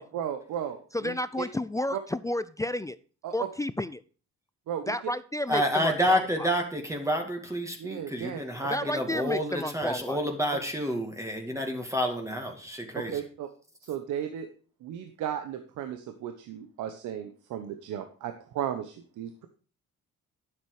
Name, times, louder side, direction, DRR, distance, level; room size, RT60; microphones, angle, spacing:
voice 1, 0.0-0.8 1.0-1.5 1.9-2.0 3.2-3.5 4.7-5.0 7.8-8.4 10.5-10.6 12.9-13.5 13.9-14.5 14.8-19.5, right 9 dB, 85° right, 8 dB, 1.0 m, -35 dB
voice 2, 0.9-3.0 3.3-4.0 4.9-6.5 8.7-10.2, left 1 dB, 10° left, 15 dB, 0.4 m, -31 dB
voice 3, 5.5-13.2, equal, 10° right, 3 dB, 2.2 m, -29 dB
9.8 x 7.3 x 4.9 m, 0.39 s
cardioid pair, 90°, 30 cm